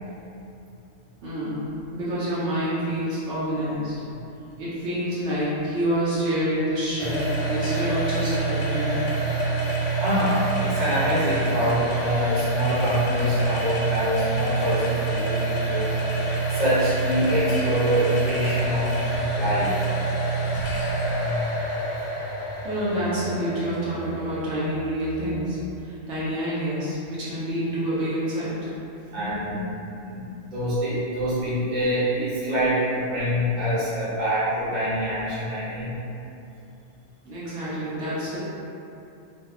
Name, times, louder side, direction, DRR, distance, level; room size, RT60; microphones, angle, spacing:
voice 1, 1.2-1.6 1.9-3.9 4.6-7.1 7.4-9.0 22.6-28.6 37.3-38.4, equal, 75° right, -10 dB, 1.0 m, -27 dB
sound 1, 7.0-25.7, right 3 dB, 65° left, 0.8 m, -26 dB
voice 2, 10.0-15.9 16.5-18.9 19.3-19.8 29.1-29.7 30.1-36.0, equal, 40° right, -11 dB, 0.9 m, -25 dB
2.7 x 2.2 x 2.3 m, 2.7 s
omnidirectional pair, 1.3 m